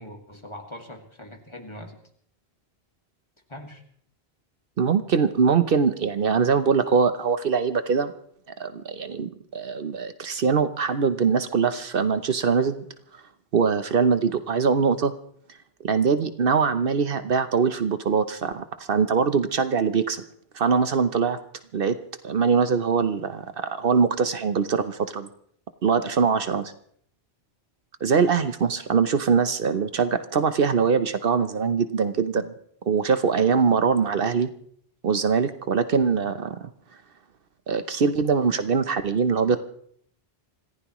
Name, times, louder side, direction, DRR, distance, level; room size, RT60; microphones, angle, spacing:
voice 1, 0.0-2.0 3.5-3.8, left 1 dB, 25° left, 3 dB, 2.1 m, -41 dB
voice 2, 4.8-8.1 8.6-12.8 13.5-15.1 15.8-20.2 20.5-21.4 21.7-22.0 22.2-25.3 25.8-26.7 28.0-32.5 32.9-34.5 35.0-36.7 37.7-39.6, right 5 dB, 65° right, 11 dB, 1.0 m, -22 dB
26.0 x 15.0 x 3.1 m, 0.62 s
omnidirectional pair, 1.1 m